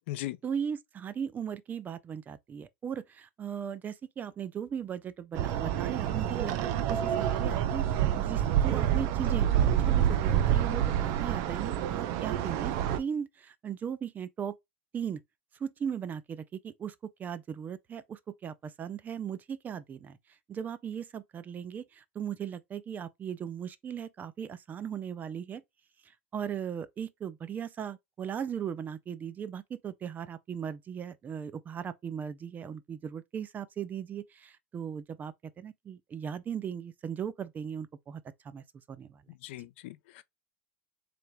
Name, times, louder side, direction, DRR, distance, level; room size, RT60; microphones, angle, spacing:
voice 1, 0.4-14.6 14.9-15.2 15.6-20.2 20.5-25.6 26.3-39.2, right 8 dB, 30° right, 0.5 m, -38 dB
sound 1, 5.3-13.0, right 10 dB, 60° right, 0.7 m, -27 dB
voice 2, 39.4-40.2, left 16 dB, 80° left, 0.5 m, -38 dB
3.7 x 3.4 x 3.5 m
supercardioid pair, 115°, 6 cm